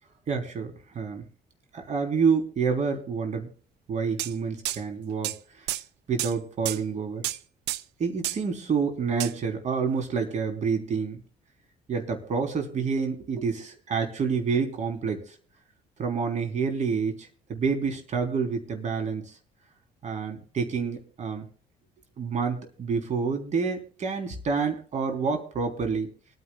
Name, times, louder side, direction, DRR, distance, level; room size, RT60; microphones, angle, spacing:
voice 1, 0.3-1.2 1.7-3.5 3.9-5.3 6.1-7.2 8.0-11.2 11.9-15.3 16.0-19.2 20.0-21.5 22.2-26.1, right 5 dB, 45° right, 5 dB, 3.6 m, -28 dB
sound 1, 4.2-4.3 4.6-4.8 5.2-5.4 5.7-5.8 6.2-6.3 6.6-6.8 7.2-7.4 7.7-7.8 8.2-8.4 9.2-9.3, right 15 dB, 90° right, 0.7 m, -30 dB
28.0 x 9.7 x 2.3 m, 0.43 s
cardioid pair, 110°, 17 cm